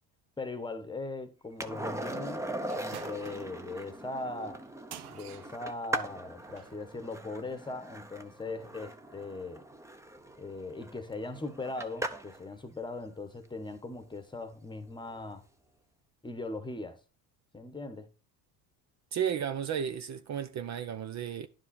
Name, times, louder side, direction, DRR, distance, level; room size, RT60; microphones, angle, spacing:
voice 1, 0.4-4.6 5.1-9.7 10.4-15.4 16.2-17.0 17.5-18.1, left 2 dB, 10° left, 1.2 m, -39 dB
Skateboard, 1.6-12.4 15.0-15.1, right 1 dB, 5° right, 0.8 m, -40 dB
sound 1, 2.6-6.8, right 11 dB, 60° right, 1.0 m, -50 dB
voice 2, 19.1-21.5, right 8 dB, 40° right, 0.8 m, -33 dB
11.0 x 5.0 x 4.2 m
cardioid pair, 125°, 42 cm